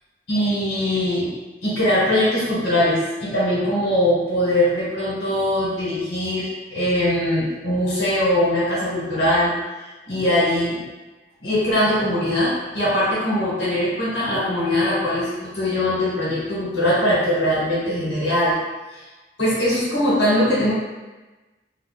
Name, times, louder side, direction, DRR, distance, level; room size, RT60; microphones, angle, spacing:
voice 1, 0.3-1.3 1.6-9.5 10.1-10.9 11.4-18.6 18.9-19.0 19.4-20.7, left 1 dB, 80° left, -9 dB, 1.3 m, -21 dB
2.8 x 2.0 x 3.9 m, 1.2 s
head